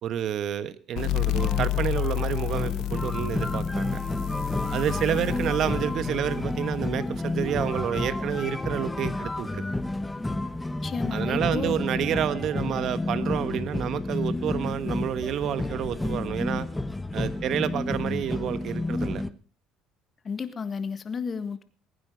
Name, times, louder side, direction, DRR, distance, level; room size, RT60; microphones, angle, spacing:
voice 1, 0.0-4.0 4.7-9.6 11.1-16.7 17.1-19.2, right 9 dB, 60° right, 14 dB, 1.2 m, -29 dB
sound 1, 1.0-8.2, left 17 dB, 70° left, 0.9 m, -31 dB
sound 2, 1.2-19.3, left 2 dB, 10° left, 0.9 m, -30 dB
voice 2, 10.8-11.8 20.2-21.6, left 5 dB, 35° left, 12 dB, 1.6 m, -32 dB
21.5 x 9.4 x 5.2 m, 0.39 s
supercardioid pair, 90°, 0 cm